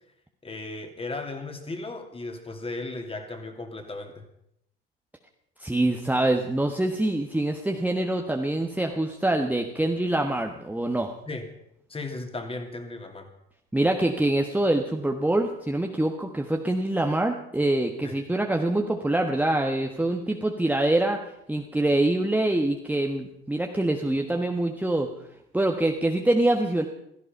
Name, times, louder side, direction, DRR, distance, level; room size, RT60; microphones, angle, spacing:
voice 1, 0.4-4.2 11.3-11.5 11.9-13.3 18.0-18.1, left 2 dB, 20° left, 5 dB, 2.7 m, -36 dB
voice 2, 5.6-11.1 13.7-21.2 21.5-25.1 25.5-26.9, right 1 dB, 5° right, 2 dB, 1.3 m, -25 dB
16.0 x 14.0 x 5.5 m, 0.77 s
hypercardioid pair, 70°, 30 cm